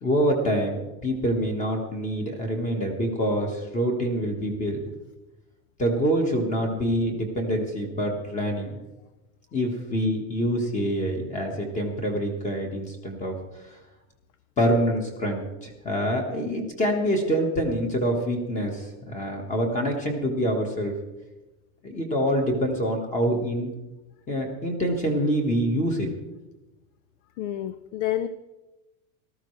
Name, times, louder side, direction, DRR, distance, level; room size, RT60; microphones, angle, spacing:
voice 1, 0.0-4.8 5.8-8.8 9.5-13.4 14.6-20.9 21.8-23.7 24.3-26.1, equal, 15° left, 2 dB, 1.5 m, -26 dB
voice 2, 27.4-28.3, left 12 dB, 60° left, 12 dB, 0.7 m, -28 dB
18.5 x 13.5 x 3.3 m, 1.0 s
supercardioid pair, 170°, 42 cm